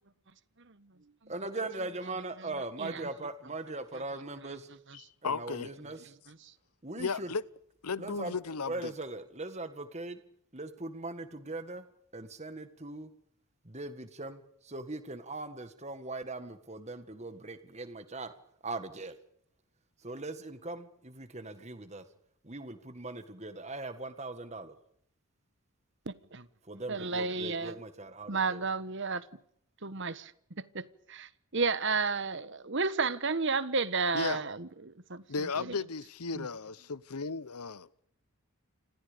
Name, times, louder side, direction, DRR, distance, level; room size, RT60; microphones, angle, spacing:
voice 1, 1.3-4.7 5.2-6.0 6.8-7.3 8.0-8.3 8.6-10.2 10.5-11.8 12.1-13.1 13.6-18.3 18.6-19.2 20.0-22.1 22.4-24.8 26.6-28.6, right 2 dB, 30° right, 1.7 m, -40 dB
voice 2, 4.9-5.7 7.0-7.4 7.8-8.9 34.1-34.4 35.3-37.9, left 4 dB, 85° left, 0.9 m, -35 dB
voice 3, 26.1-26.5 26.9-27.8 28.3-29.2 29.8-30.3 30.7-35.2 35.6-35.7 36.3-36.5, right 4 dB, 55° right, 1.3 m, -32 dB
30.0 x 26.5 x 5.2 m
head